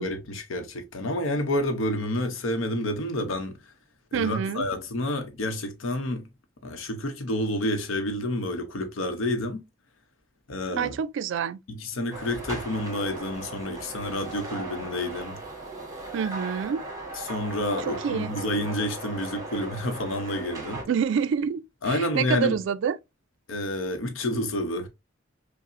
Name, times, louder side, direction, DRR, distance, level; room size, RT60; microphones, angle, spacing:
voice 1, 0.0-3.6 4.1-6.3 6.6-9.6 10.5-11.0 11.7-15.4 17.1-20.8 21.8-22.5 23.5-24.9, left 1 dB, 85° left, 0.7 m, -29 dB
voice 2, 4.1-4.6 10.7-11.6 16.1-16.8 17.9-18.3 20.9-23.0, right 7 dB, 65° right, 0.3 m, -27 dB
sound 1, 12.1-20.8, right 2 dB, 20° right, 1.1 m, -37 dB
5.4 x 2.0 x 2.5 m
head